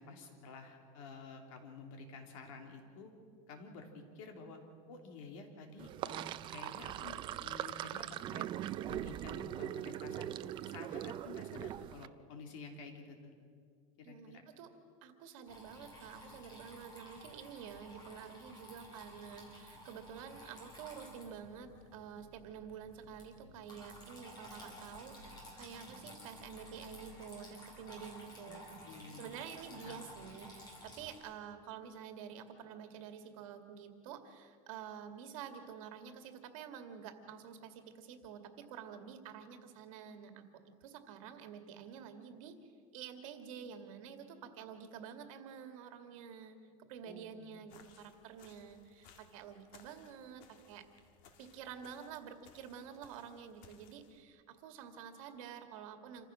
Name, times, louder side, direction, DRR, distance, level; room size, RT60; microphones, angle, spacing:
voice 1, 0.0-3.1 3.5-4.6 4.9-8.5 8.9-10.4 10.6-13.2 14.0-14.4 28.4-29.4 29.7-30.0 47.0-47.5, left 4 dB, 70° left, 3 dB, 3.2 m, -51 dB
Sink (filling or washing), 5.8-12.1, right 12 dB, 25° right, 0.4 m, -41 dB
voice 2, 14.0-14.7 15.0-28.8 29.1-40.4 40.8-46.6 46.9-50.9 51.4-56.2, right 7 dB, 70° right, 7 dB, 2.2 m, -49 dB
Water tap faucet / Trickle dribble, 15.5-31.2, equal, 25° left, 5.1 m, -53 dB
sound 1, 47.7-54.2, left 6 dB, 50° left, 1.7 m, -63 dB
27.0 x 15.0 x 6.4 m, 2.2 s
supercardioid pair, 160°, 18 cm